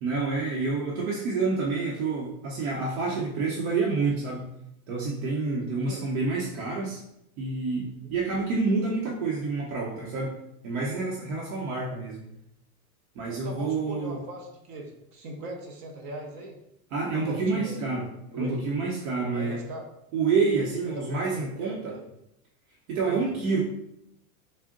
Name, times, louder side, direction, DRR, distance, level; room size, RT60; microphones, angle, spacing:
voice 1, 0.0-4.5 4.9-7.0 7.4-10.3 10.6-12.2 13.2-14.2 16.9-18.1 18.4-19.6 20.1-22.0 22.9-23.6, right 4 dB, 65° right, -3 dB, 0.8 m, -28 dB
voice 2, 13.3-16.5 17.2-17.9 18.3-18.6 19.3-19.9 20.9-22.0 23.1-23.2, right 2 dB, 35° right, 1 dB, 0.6 m, -40 dB
3.5 x 2.1 x 3.6 m, 0.78 s
supercardioid pair, 145°, 45 cm